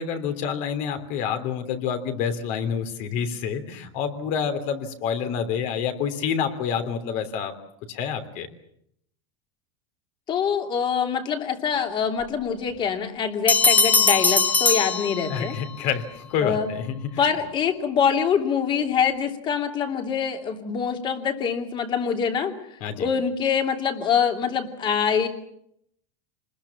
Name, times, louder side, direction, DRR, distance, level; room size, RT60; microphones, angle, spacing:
voice 1, 0.0-7.5 7.9-8.5 15.3-17.3 22.8-23.1, left 7 dB, 50° left, 8 dB, 3.3 m, -28 dB
voice 2, 10.3-15.5 16.4-16.7 17.2-22.5 23.0-25.3, left 7 dB, 30° left, 5 dB, 3.0 m, -24 dB
Bell, 13.5-15.7, left 4 dB, 10° left, 1.0 m, -20 dB
27.0 x 20.5 x 7.3 m, 0.73 s
supercardioid pair, 140°, 16 cm